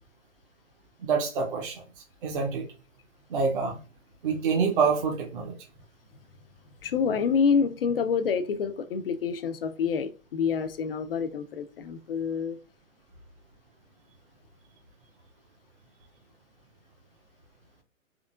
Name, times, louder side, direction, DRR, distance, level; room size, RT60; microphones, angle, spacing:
voice 1, 1.0-1.8 2.2-2.7 3.3-3.8 4.2-5.6, right 5 dB, 40° right, 0.7 m, -26 dB
voice 2, 6.8-12.6, left 6 dB, 45° left, 0.4 m, -27 dB
3.7 x 3.5 x 2.3 m
figure-of-eight pair, 125°, 42 cm